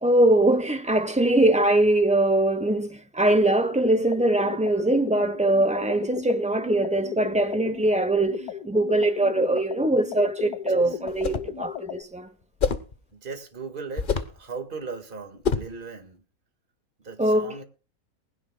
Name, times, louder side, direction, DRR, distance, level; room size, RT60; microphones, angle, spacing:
voice 1, 0.0-12.3 17.2-17.6, right 1 dB, 5° right, 0.9 m, -22 dB
sound 1, 3.3-12.0, left 9 dB, 80° left, 1.5 m, -35 dB
sound 2, 11.1-11.6 12.6-12.9 14.0-14.4 15.4-15.8, left 6 dB, 40° left, 1.0 m, -26 dB
voice 2, 13.1-16.2 17.0-17.6, right 4 dB, 35° right, 2.0 m, -38 dB
20.0 x 16.5 x 2.3 m
omnidirectional pair, 1.6 m